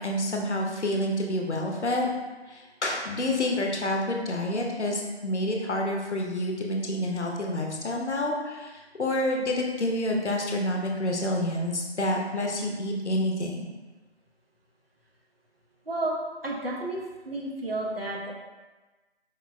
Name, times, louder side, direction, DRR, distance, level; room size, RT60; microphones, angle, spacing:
voice 1, 0.0-2.1 2.5-13.7, left 1 dB, 85° left, 0 dB, 0.7 m, -28 dB
voice 2, 15.9-16.2 16.4-17.0 17.2-18.3, right 2 dB, 60° right, -2 dB, 0.6 m, -31 dB
4.3 x 2.1 x 2.4 m, 1.2 s
figure-of-eight pair, 175°, 34 cm